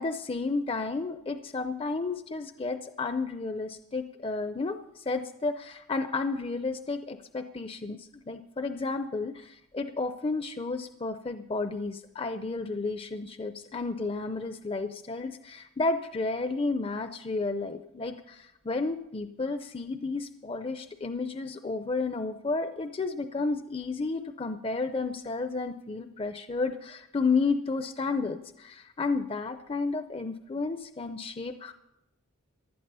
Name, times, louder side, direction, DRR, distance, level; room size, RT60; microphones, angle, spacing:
voice 1, 0.0-31.7, left 3 dB, 25° left, 9 dB, 0.5 m, -32 dB
15.5 x 11.5 x 5.5 m, 0.86 s
head